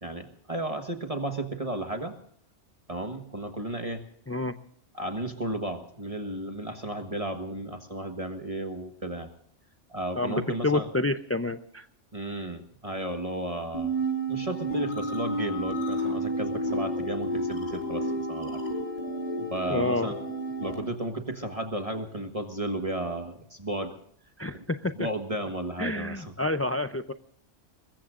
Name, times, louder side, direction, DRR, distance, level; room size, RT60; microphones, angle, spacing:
voice 1, 0.0-2.1 2.9-4.0 4.9-9.3 9.9-10.9 12.1-13.9 14.3-18.6 19.4-20.2 20.6-23.9 24.5-24.6 25.0-26.3, right 1 dB, 30° right, 5 dB, 1.5 m, -33 dB
voice 2, 10.2-11.9 19.7-20.1 24.4-24.9 25.8-27.1, left 2 dB, 20° left, 8 dB, 0.3 m, -28 dB
sound 1, 13.7-20.8, right 1 dB, 40° left, 6.6 m, -31 dB
24.5 x 21.5 x 2.5 m, 0.65 s
omnidirectional pair, 1.3 m